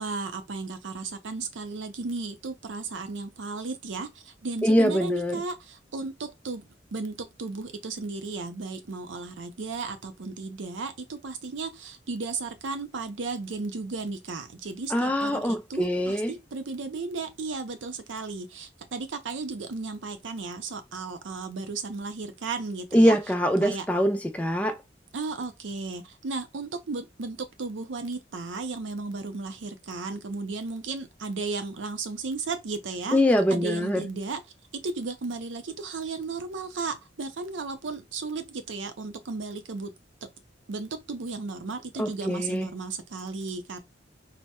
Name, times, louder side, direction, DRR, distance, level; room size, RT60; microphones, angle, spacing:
voice 1, 0.0-23.2 23.6-23.9 25.1-33.2 33.5-34.4 34.8-39.9 40.2-40.3 40.7-43.8, right 3 dB, 75° right, 0.6 m, -34 dB
voice 2, 4.6-5.4 14.9-16.3 22.9-24.8 33.1-34.1 42.0-42.7, equal, 10° left, 0.4 m, -23 dB
4.1 x 2.0 x 2.2 m
head